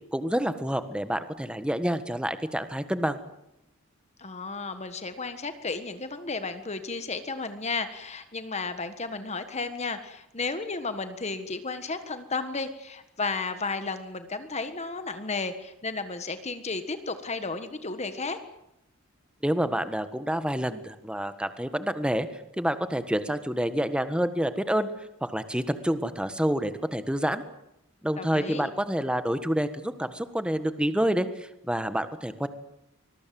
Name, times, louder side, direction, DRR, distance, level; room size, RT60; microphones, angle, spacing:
voice 1, 0.1-3.2 19.4-24.9 25.2-27.4 28.0-32.5, equal, 5° right, 11 dB, 1.5 m, -28 dB
voice 2, 4.2-18.4 28.2-28.7, left 3 dB, 30° left, 9 dB, 1.5 m, -33 dB
25.0 x 21.5 x 7.7 m, 0.85 s
head